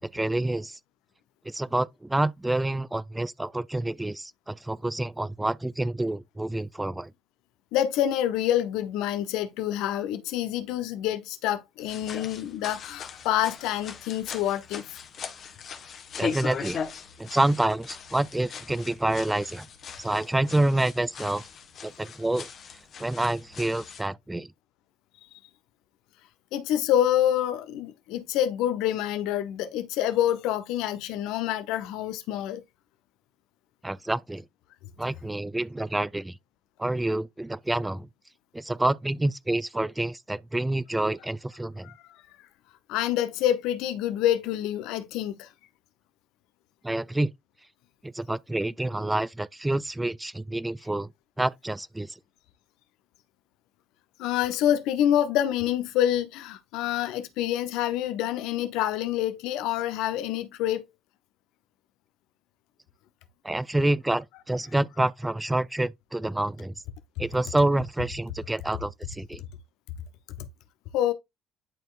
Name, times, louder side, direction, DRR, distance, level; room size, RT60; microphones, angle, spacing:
voice 1, 0.0-0.8 1.5-7.1 16.2-16.8 17.2-19.7 20.0-21.4 21.8-22.5 23.0-24.5 33.8-34.4 35.0-36.4 36.8-38.1 38.5-41.9 46.8-47.3 48.0-51.1 51.4-52.2 63.4-66.7 67.2-69.4, right 1 dB, 10° right, 0.4 m, -28 dB
voice 2, 7.7-15.0 26.5-32.6 41.8-42.0 42.9-45.5 54.2-60.9 70.9-71.1, left 11 dB, 65° left, 0.8 m, -27 dB
sound 1, 11.8-24.1, left 6 dB, 45° left, 1.4 m, -39 dB
10.5 x 4.4 x 2.5 m
figure-of-eight pair, 50°, 0 cm